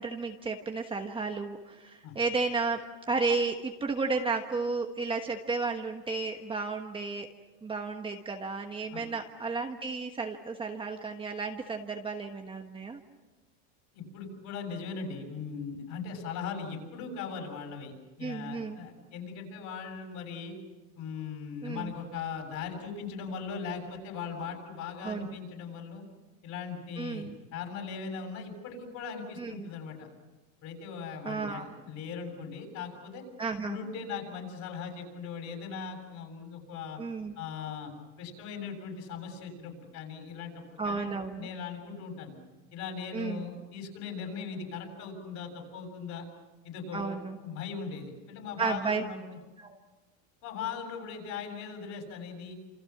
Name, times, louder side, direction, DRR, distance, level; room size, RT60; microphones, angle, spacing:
voice 1, 0.0-7.3 7.6-13.0 18.2-18.8 21.6-21.9 25.0-25.4 27.0-27.3 29.4-29.7 31.2-31.6 33.4-33.8 37.0-37.3 40.8-41.5 43.1-43.4 46.9-47.4 48.6-49.1 49.6-49.8, right 4 dB, 15° right, 3 dB, 1.2 m, -33 dB
voice 2, 13.9-20.6 21.0-26.0 26.4-30.1 30.6-33.2 33.6-37.0 37.4-37.9 38.2-42.3 42.7-46.2 46.6-49.4 50.4-52.5, left 6 dB, 45° left, 3 dB, 7.6 m, -39 dB
29.5 x 28.0 x 6.0 m, 1.1 s
supercardioid pair, 150°, 38 cm